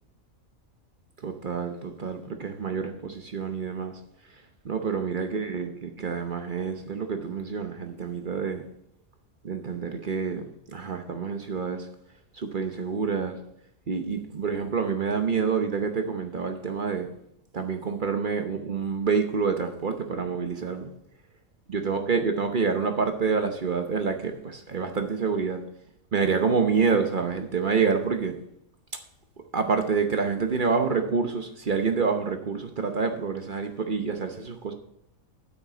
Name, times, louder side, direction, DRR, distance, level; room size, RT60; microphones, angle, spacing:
voice 1, 1.2-3.9 4.6-8.6 9.4-11.9 12.3-13.4 13.9-17.1 17.5-20.9 21.7-25.6 26.1-28.4 29.5-34.7, right 5 dB, 45° right, 6 dB, 0.9 m, -27 dB
8.3 x 6.5 x 5.9 m, 0.77 s
omnidirectional pair, 1.5 m